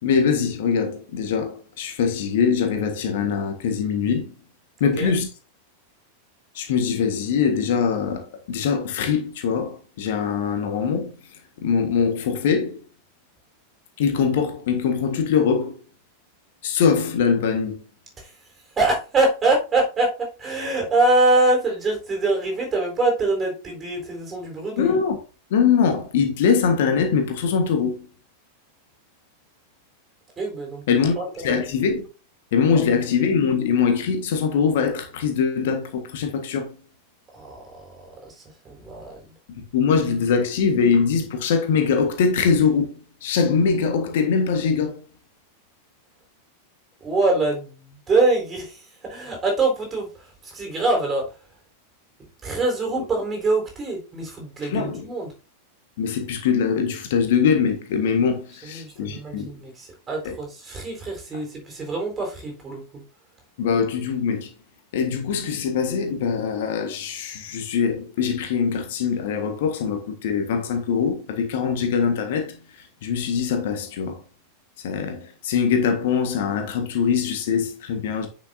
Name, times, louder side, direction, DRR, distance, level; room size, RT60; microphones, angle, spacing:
voice 1, 0.0-4.3 4.8-5.3 6.5-11.1 11.6-12.8 14.0-15.8 16.6-17.8 24.8-25.2 25.5-28.1 30.9-31.1 31.4-32.0 32.5-36.7 39.5-45.0 53.0-53.1 54.6-55.1 56.0-59.5 60.2-60.3 63.6-64.5 64.9-74.2 74.8-78.3, left 6 dB, 55° left, 1.7 m, -22 dB
voice 2, 18.8-25.0 30.4-30.8 31.2-31.6 32.7-32.8 37.3-37.8 38.2-39.2 47.0-51.3 52.4-55.3 58.6-63.0, right 2 dB, 20° right, 4.3 m, -24 dB
10.0 x 6.5 x 2.8 m
figure-of-eight pair, 90°, 0 cm